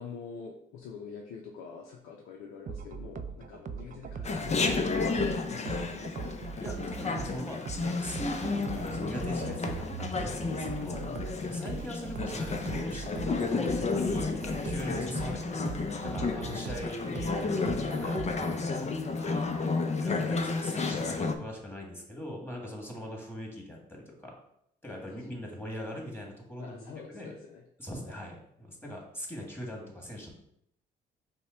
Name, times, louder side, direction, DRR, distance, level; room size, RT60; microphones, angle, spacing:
voice 1, 0.0-6.3 10.9-11.5 15.2-15.4 16.1-16.7 19.1-19.9 24.9-25.0 26.6-27.6 28.1-28.2, left 5 dB, 80° left, 0 dB, 0.6 m, -45 dB
sound 1, 2.7-18.7, right 6 dB, 40° right, 0.4 m, -41 dB
Chatter, 4.2-21.3, left 4 dB, 35° left, 0.6 m, -32 dB
voice 2, 6.6-11.1 11.5-15.6 16.0-18.9 20.0-24.3 24.8-27.3 27.8-30.3, equal, 10° left, -1 dB, 1.8 m, -41 dB
5.5 x 2.2 x 4.4 m, 0.74 s
supercardioid pair, 60°, 21 cm